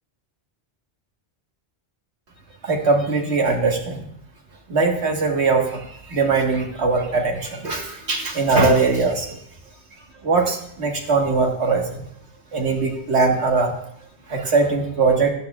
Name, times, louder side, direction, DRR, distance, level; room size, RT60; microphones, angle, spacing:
voice 1, 2.6-4.0 4.7-9.4 10.2-12.1 12.5-13.7 14.3-15.3, right 4 dB, 85° right, 2 dB, 1.7 m, -21 dB
14.5 x 11.5 x 2.3 m, 0.69 s
omnidirectional pair, 1.1 m